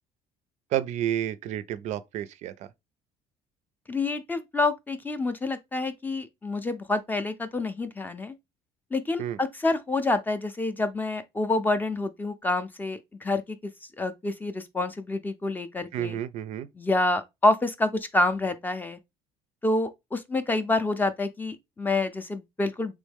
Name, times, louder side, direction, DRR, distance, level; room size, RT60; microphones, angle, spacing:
voice 1, 0.7-2.7 9.2-9.4 15.9-16.7, right 11 dB, 60° right, 0.4 m, -30 dB
voice 2, 3.9-8.3 8.9-13.7 14.0-16.2 16.8-19.0 19.6-22.9, left 2 dB, 15° left, 0.4 m, -27 dB
3.5 x 3.1 x 3.4 m
cardioid pair, 145°, 14 cm